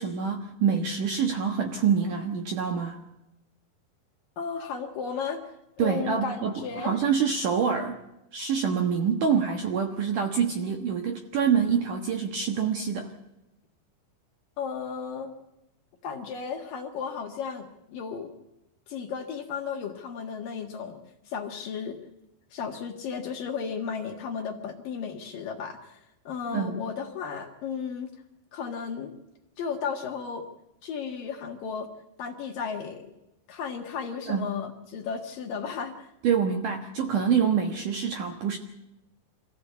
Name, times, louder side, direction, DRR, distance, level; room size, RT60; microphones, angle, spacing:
voice 1, 0.0-3.0 5.8-8.0 8.3-13.1 26.5-26.8 34.3-34.5 36.2-38.6, right 7 dB, 65° right, 4 dB, 2.2 m, -26 dB
voice 2, 4.4-5.4 5.8-7.0 14.6-15.3 16.0-18.3 18.9-21.0 21.3-22.0 22.5-28.1 28.5-29.1 29.6-30.4 30.8-31.9 32.2-33.1 33.5-36.1, left 6 dB, 60° left, 3 dB, 2.8 m, -34 dB
25.5 x 15.5 x 8.3 m, 0.90 s
omnidirectional pair, 5.3 m